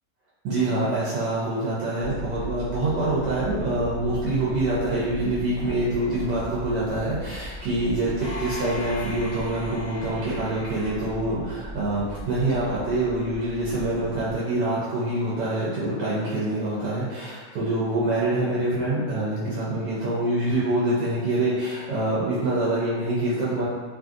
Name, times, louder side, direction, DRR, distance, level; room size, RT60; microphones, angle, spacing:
voice 1, 0.4-23.7, right 1 dB, 75° right, -8 dB, 1.3 m, -25 dB
sound 1, 2.0-14.4, equal, 75° left, 0.4 m, -39 dB
sound 2, 8.2-11.9, left 2 dB, 30° right, 0.7 m, -39 dB
3.1 x 2.6 x 2.4 m, 1.5 s
omnidirectional pair, 1.9 m